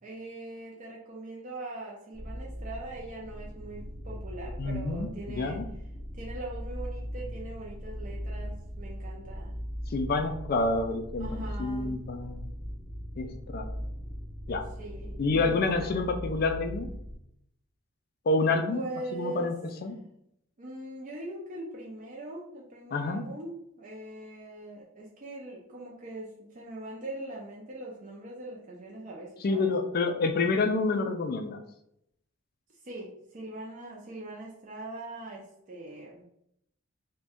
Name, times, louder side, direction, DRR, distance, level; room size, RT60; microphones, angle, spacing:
voice 1, 0.0-5.6 6.1-9.5 11.2-12.0 14.8-16.0 18.7-19.5 20.6-29.7 32.8-36.2, right 2 dB, 40° right, -4 dB, 0.5 m, -41 dB
sound 1, 2.1-17.2, equal, 20° left, 0.7 m, -39 dB
voice 2, 4.6-5.6 9.9-12.5 13.2-13.3 13.5-13.7 14.5-14.7 15.2-16.9 18.3-18.8 19.1-20.0 22.9-23.2 29.4-31.6, left 3 dB, 45° left, 6 dB, 0.3 m, -28 dB
2.5 x 2.2 x 3.4 m, 0.76 s
head